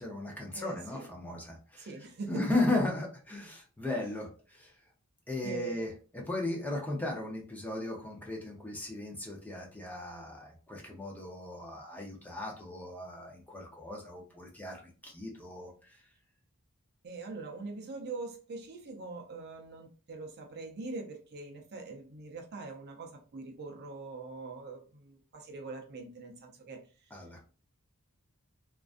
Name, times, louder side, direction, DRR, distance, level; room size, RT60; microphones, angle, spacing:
voice 1, 0.0-1.9 2.3-4.7 5.3-16.0 27.1-27.4, left 2 dB, 5° left, -1 dB, 0.5 m, -36 dB
voice 2, 0.5-1.1 1.8-2.5 4.0-4.1 5.4-5.9 17.0-26.8, right 3 dB, 50° right, 3 dB, 0.5 m, -42 dB
2.4 x 2.2 x 2.4 m, 0.36 s
head